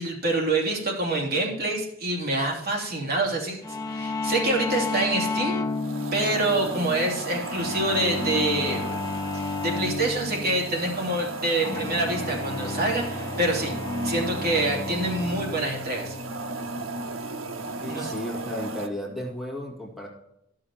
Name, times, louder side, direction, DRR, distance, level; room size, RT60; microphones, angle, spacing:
voice 1, 0.0-3.6 3.9-5.6 6.1-8.8 9.3-13.7 14.0-16.1 17.9-18.1, right 2 dB, 50° right, -2 dB, 2.9 m, -26 dB
sound 1, 3.6-18.1, left 3 dB, 20° left, 0.7 m, -33 dB
sound 2, 5.7-18.9, right 2 dB, 80° right, 0.9 m, -35 dB
voice 2, 17.8-20.1, left 1 dB, ahead, -3 dB, 2.2 m, -34 dB
13.5 x 6.5 x 4.3 m, 0.83 s
head